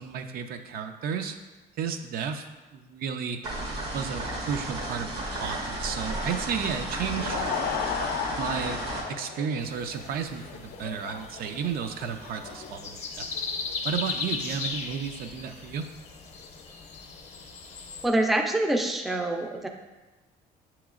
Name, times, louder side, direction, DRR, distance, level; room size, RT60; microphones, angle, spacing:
voice 1, 0.0-1.4 1.8-2.5 2.7-3.4 3.9-7.4 8.3-8.8 9.1-13.3 13.8-15.9, right 7 dB, 60° right, 7 dB, 0.4 m, -33 dB
sound 1, 3.4-9.0, right 1 dB, 80° right, 1.2 m, -33 dB
Laughter / Crowd, 6.8-13.7, left 7 dB, 75° left, 0.4 m, -36 dB
sound 2, 9.6-18.1, left 4 dB, 40° left, 0.6 m, -37 dB
voice 2, 18.0-19.7, right 1 dB, ahead, 3 dB, 0.4 m, -25 dB
7.1 x 3.0 x 2.4 m, 1.1 s
cardioid pair, 110°, 17 cm